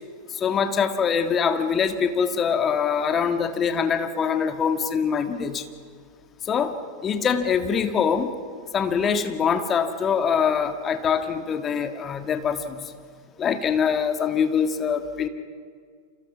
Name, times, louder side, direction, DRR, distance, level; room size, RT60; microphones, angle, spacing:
voice 1, 0.3-5.6 6.5-6.7 7.0-8.3 8.7-12.9 13.4-15.3, left 6 dB, 25° left, 8 dB, 1.7 m, -24 dB
29.5 x 27.5 x 6.1 m, 2.1 s
figure-of-eight pair, 90°, 0 cm